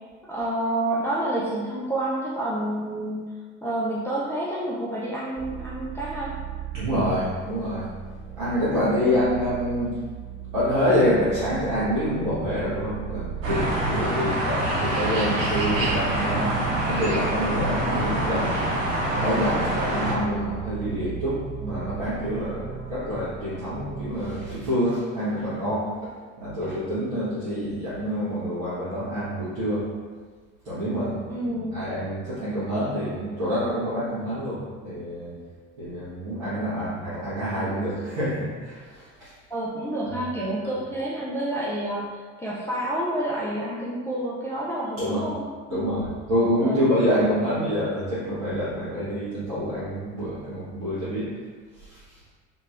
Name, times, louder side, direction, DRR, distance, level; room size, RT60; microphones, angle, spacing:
voice 1, 0.3-3.3 3.6-6.3 14.1-14.4 31.3-31.9 39.5-45.4 45.7-45.8 46.6-46.9 47.3-47.5, right 1 dB, 5° left, -7 dB, 0.4 m, -29 dB
sound 1, 5.4-24.6, right 9 dB, 30° right, 0.8 m, -37 dB
voice 2, 6.7-7.9 8.4-9.9 10.5-18.8 19.1-25.9 26.4-29.8 30.6-35.3 35.8-39.3 45.0-45.2 45.7-51.3 51.8-52.0, equal, 70° right, -14 dB, 1.2 m, -27 dB
sound 2, 13.4-20.1, right 1 dB, 85° right, 0.6 m, -26 dB
2.8 x 2.8 x 2.4 m, 1.5 s
figure-of-eight pair, 60°, 38 cm